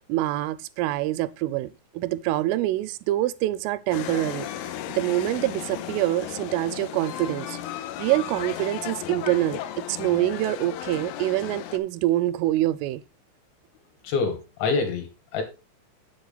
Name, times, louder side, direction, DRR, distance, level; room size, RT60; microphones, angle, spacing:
voice 1, 0.0-4.5 4.9-7.6 8.0-13.0, right 15 dB, 85° right, 3.1 m, -25 dB
sound 1, 3.9-11.8, left 12 dB, 90° left, 3.4 m, -35 dB
voice 2, 14.0-15.4, left 4 dB, 70° left, 4.0 m, -26 dB
8.1 x 7.7 x 3.9 m
omnidirectional pair, 5.6 m